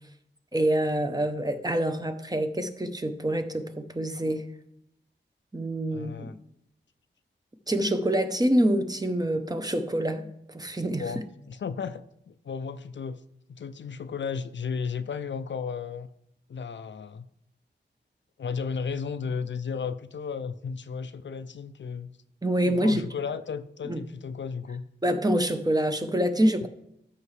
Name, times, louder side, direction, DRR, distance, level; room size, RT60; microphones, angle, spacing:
voice 1, 0.5-4.5 5.5-6.3 7.7-11.1 22.4-23.0 23.9-24.0 25.0-26.7, right 1 dB, 20° right, 0.8 m, -26 dB
voice 2, 5.9-6.3 11.0-13.2 13.5-16.1 16.5-17.3 18.4-22.1 22.6-24.8 26.6-26.7, left 6 dB, 70° left, 0.4 m, -34 dB
13.5 x 5.5 x 3.2 m
wide cardioid pair, 65°, 20 cm